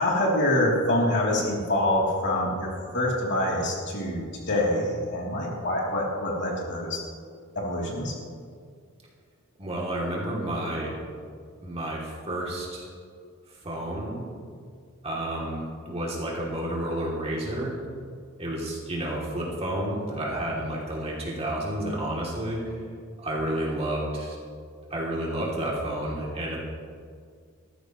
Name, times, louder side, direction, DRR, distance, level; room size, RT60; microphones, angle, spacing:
voice 1, 0.0-7.0 7.5-8.1, left 1 dB, 55° left, -3 dB, 3.2 m, -25 dB
voice 2, 9.6-10.9 11.6-12.9 13.6-14.2 15.0-17.8 18.4-22.8 23.2-24.4 24.9-26.6, right 1 dB, 30° right, -4 dB, 2.8 m, -30 dB
18.0 x 14.0 x 3.1 m, 2.1 s
head